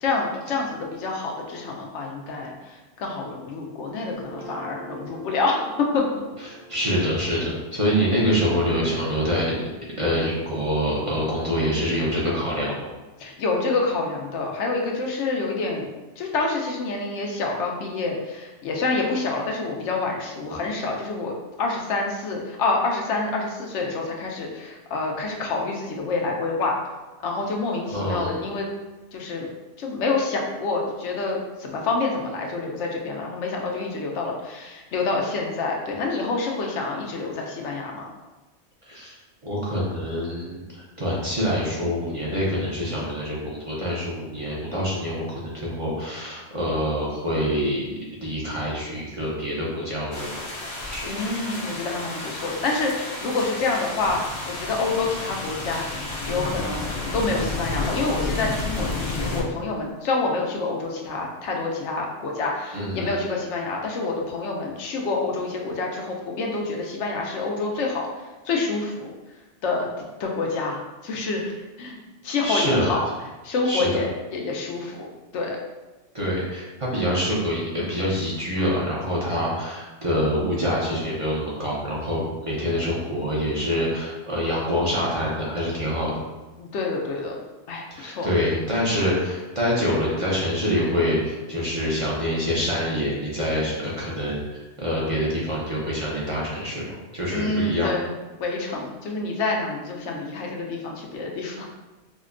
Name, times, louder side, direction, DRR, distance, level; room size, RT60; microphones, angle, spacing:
voice 1, 0.0-6.0 8.0-8.2 13.2-15.9 16.2-26.8 27.2-28.7 29.1-29.5 29.8-38.1 51.1-56.8 57.1-68.1 68.4-69.1 69.6-69.9 70.2-71.5 71.8-72.0 72.2-73.1 73.4-75.1 75.3-75.6 86.6-87.4 87.7-88.3 97.3-98.1 98.4-101.7, left 3 dB, 90° left, 0 dB, 0.9 m, -27 dB
Guitar, 4.1-10.4, equal, 55° right, 1.2 m, -45 dB
voice 2, 6.7-9.5 10.0-12.9 27.9-28.3 38.8-39.2 39.4-50.4 50.9-51.1 62.7-63.1 72.4-73.0 73.6-74.0 76.1-86.1 87.9-96.8 97.1-97.9, equal, 35° right, -6 dB, 0.6 m, -25 dB
sound 1, 50.1-59.4, left 2 dB, 40° left, 0.4 m, -31 dB
4.9 x 2.1 x 2.5 m, 1.2 s
omnidirectional pair, 1.2 m